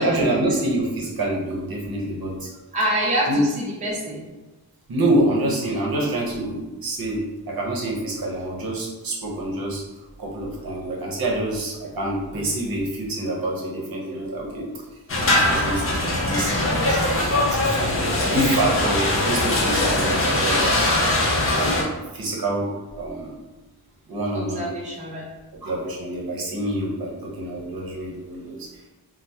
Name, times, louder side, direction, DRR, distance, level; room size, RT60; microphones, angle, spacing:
voice 1, 0.0-2.5 3.3-3.4 4.9-7.2 7.5-9.8 10.2-14.7 15.3-20.8 21.5-23.3 24.1-24.7 25.6-28.7, right 1 dB, 60° right, -2 dB, 0.8 m, -26 dB
voice 2, 2.7-4.3 12.3-12.6 19.2-19.6 24.3-25.3, right 1 dB, 20° right, -4 dB, 0.5 m, -27 dB
sound 1, 15.1-21.8, left 1 dB, 35° left, 0.5 m, -21 dB
2.8 x 2.0 x 3.3 m, 1.1 s
wide cardioid pair, 155°, 40 cm